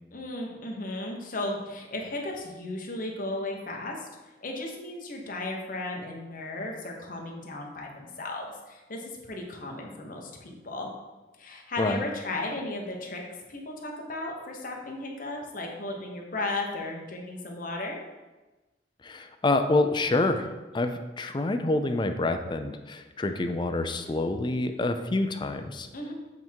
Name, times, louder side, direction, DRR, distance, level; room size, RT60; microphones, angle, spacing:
voice 1, 0.1-10.9 11.4-13.2 13.5-18.0 25.9-26.1, left 2 dB, 50° left, 0 dB, 1.1 m, -35 dB
voice 2, 19.0-25.9, left 2 dB, 25° left, 7 dB, 0.5 m, -27 dB
8.0 x 3.6 x 4.6 m, 1.2 s
head